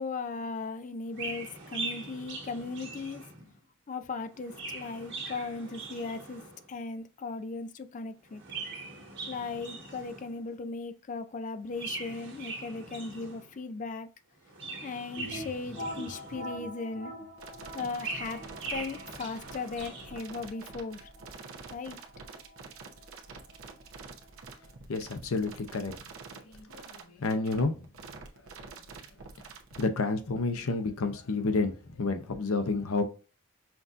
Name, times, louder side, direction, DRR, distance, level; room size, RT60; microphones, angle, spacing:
voice 1, 0.0-3.2 3.9-6.4 6.7-8.4 9.3-14.1 14.8-17.1 17.7-18.4 18.7-21.1 21.7-22.0, left 4 dB, 35° left, 0.3 m, -37 dB
Chirp tweet, 1.1-3.6 4.3-6.7 8.2-10.4 11.7-13.6 14.4-16.7 17.7-20.3, right 3 dB, 55° right, 1.6 m, -41 dB
sound 1, 15.2-24.7, equal, 55° left, 1.7 m, -45 dB
sound 2, 17.4-29.8, right 4 dB, 75° right, 0.8 m, -47 dB
voice 2, 24.9-25.9 26.3-27.8 29.8-33.0, left 3 dB, 90° left, 0.7 m, -30 dB
5.8 x 2.7 x 2.4 m
head